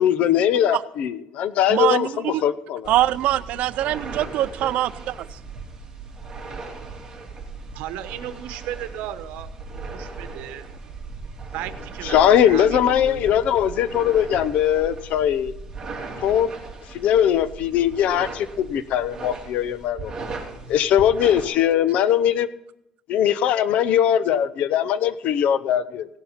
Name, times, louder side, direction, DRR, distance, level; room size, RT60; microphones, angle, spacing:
voice 1, 0.0-2.9 12.0-15.5 16.2-16.5 16.9-20.1 20.7-22.5 23.1-26.1, left 10 dB, 60° left, 14 dB, 0.8 m, -20 dB
voice 2, 1.7-2.4 2.9-5.2, right 14 dB, 60° right, 17 dB, 0.5 m, -23 dB
sound 1, 2.8-21.4, right 4 dB, 20° right, 3.0 m, -37 dB
voice 3, 3.3-3.6 7.7-10.7 11.5-13.4, right 12 dB, 85° right, 11 dB, 1.0 m, -35 dB
17.0 x 7.0 x 5.8 m, 0.81 s
cardioid pair, 145°, 3 cm